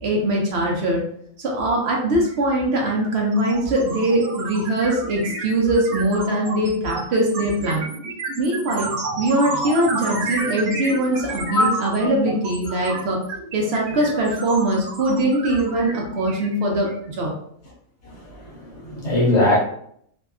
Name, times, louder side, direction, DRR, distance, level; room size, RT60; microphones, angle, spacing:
voice 1, 0.0-1.0 1.4-7.8 8.4-8.9 9.2-13.2 13.5-17.3, right 1 dB, 60° right, -1 dB, 0.7 m, -21 dB
sound 1, 2.3-2.4 2.7-17.1, right 3 dB, 85° right, 1.1 m, -31 dB
voice 2, 11.4-11.9 18.0-19.6, left 1 dB, 60° left, -3 dB, 0.9 m, -21 dB
2.6 x 2.3 x 2.3 m, 0.68 s
omnidirectional pair, 1.5 m